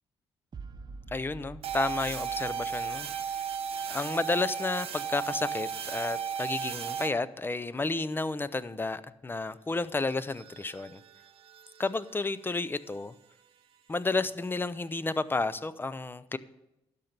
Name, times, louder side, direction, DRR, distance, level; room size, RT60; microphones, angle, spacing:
sound 1, 0.5-4.0, right 3 dB, 40° right, 0.8 m, -48 dB
voice 1, 1.1-3.1 3.9-11.0 11.8-13.1 13.9-16.4, left 3 dB, 20° left, 15 dB, 0.5 m, -31 dB
sound 2, 1.6-7.1 10.1-12.3, right 7 dB, 65° right, 0.9 m, -35 dB
12.0 x 5.3 x 6.7 m, 0.90 s
cardioid pair, 80°, 11 cm